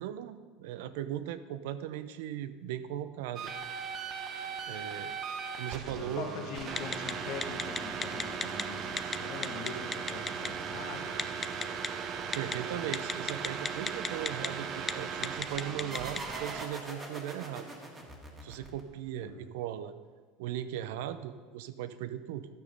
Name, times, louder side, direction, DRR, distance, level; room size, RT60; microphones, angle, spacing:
voice 1, 0.0-3.5 4.7-5.1 5.6-6.3 12.3-17.7 18.4-19.9 20.4-22.5, right 11 dB, 75° right, 13 dB, 0.6 m, -38 dB
sound 1, 3.4-16.6, right 6 dB, 40° right, 0.9 m, -38 dB
voice 2, 5.9-11.2 19.2-19.4, left 5 dB, 60° left, 2 dB, 1.6 m, -42 dB
Telephone, 6.8-7.1 7.4-8.6 9.0-9.2 9.4-10.5 11.2-11.9 12.3-12.5 12.9-14.5 14.8-14.9 15.2-16.2, left 5 dB, 20° left, 0.4 m, -32 dB
sound 2, 15.9-19.2, right 1 dB, 20° right, 1.8 m, -43 dB
12.0 x 6.4 x 5.3 m, 1.5 s
supercardioid pair, 135°, 0 cm